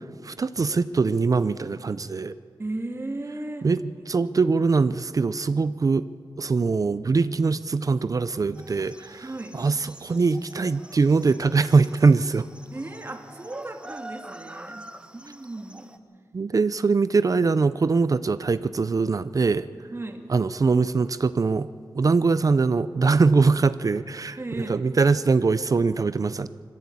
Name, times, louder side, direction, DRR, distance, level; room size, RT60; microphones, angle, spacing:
voice 1, 0.2-2.3 3.6-3.8 4.1-6.1 6.4-12.5 16.3-19.7 20.3-21.7 21.9-26.5, right 4 dB, 45° right, 14 dB, 0.5 m, -22 dB
voice 2, 2.6-3.7 9.2-9.6 12.7-16.0 19.9-20.3 24.4-24.8, right 2 dB, 30° right, 4 dB, 2.1 m, -35 dB
sound 1, 8.5-16.0, right 1 dB, 10° right, 1.1 m, -46 dB
21.5 x 15.0 x 8.5 m, 2.1 s
wide cardioid pair, 95°, 8 cm